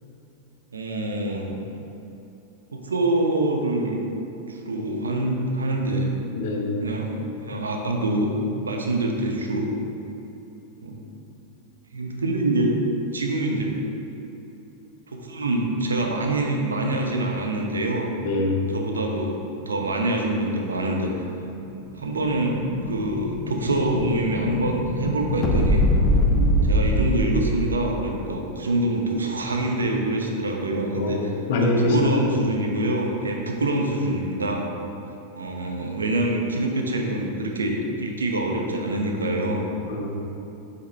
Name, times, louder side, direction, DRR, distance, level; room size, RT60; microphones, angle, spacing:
voice 1, 0.7-1.6 2.7-4.0 4.5-6.2 6.8-9.7 10.8-11.0 11.9-12.7 13.1-13.8 15.1-18.1 18.7-19.4 19.7-21.1 22.0-25.8 26.6-31.3 31.6-34.6 35.4-39.7, right 1 dB, 75° right, 1 dB, 0.8 m, -25 dB
voice 2, 6.3-6.9 18.2-18.7 26.3-26.5 31.0-32.3 39.8-40.4, left 2 dB, 55° left, 1 dB, 0.9 m, -25 dB
Explosion, 21.7-27.8, left 1 dB, 25° left, 0.7 m, -23 dB
8.1 x 5.1 x 3.1 m, 3.0 s
figure-of-eight pair, 90°, 0 cm